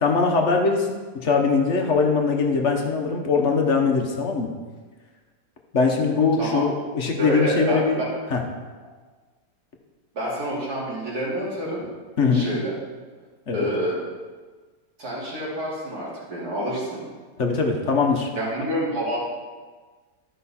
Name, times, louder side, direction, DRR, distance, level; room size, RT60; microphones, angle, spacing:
voice 1, 0.0-4.5 5.7-8.0 8.3-8.4 12.2-12.5 13.5-13.7 17.4-18.3, left 4 dB, 50° left, 2 dB, 1.2 m, -21 dB
voice 2, 7.2-7.8 10.1-11.8 12.3-12.8 13.5-14.0 15.0-17.0 18.3-19.2, equal, 65° right, -6 dB, 3.2 m, -27 dB
13.0 x 5.6 x 4.3 m, 1.4 s
omnidirectional pair, 1.8 m